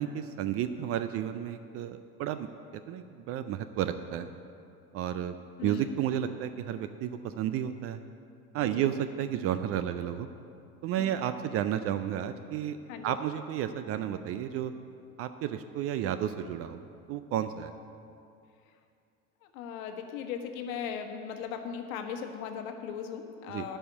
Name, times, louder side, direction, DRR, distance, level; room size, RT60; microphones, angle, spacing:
voice 1, 0.0-2.5 2.7-4.3 4.9-5.4 5.6-8.0 8.5-10.3 10.8-12.8 13.0-14.7 15.2-16.8 17.1-17.7 23.5-23.7, right 10 dB, 35° right, 10 dB, 0.4 m, -32 dB
voice 2, 5.6-5.9 8.6-8.9 11.0-11.1 12.9-13.1 19.5-23.8, left 7 dB, 60° left, 5 dB, 1.3 m, -38 dB
11.0 x 5.5 x 8.4 m, 2.5 s
hypercardioid pair, 85°, 45 cm